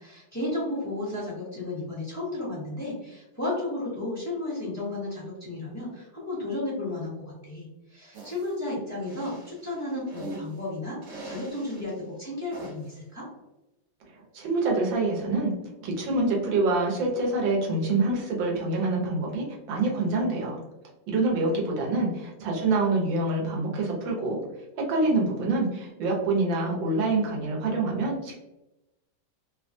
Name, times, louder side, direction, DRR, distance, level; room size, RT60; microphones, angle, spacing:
voice 1, 0.0-11.9 12.2-13.2, left 2 dB, 10° left, -8 dB, 0.8 m, -33 dB
sound 1, 8.1-8.5 9.0-10.6 11.0-11.9 12.5-13.0, right 2 dB, 55° right, 0.9 m, -42 dB
voice 2, 14.3-15.5 15.8-20.6 21.1-24.4 24.8-28.3, right 2 dB, 75° right, -2 dB, 1.5 m, -26 dB
3.4 x 2.3 x 2.5 m, 0.95 s
omnidirectional pair, 2.1 m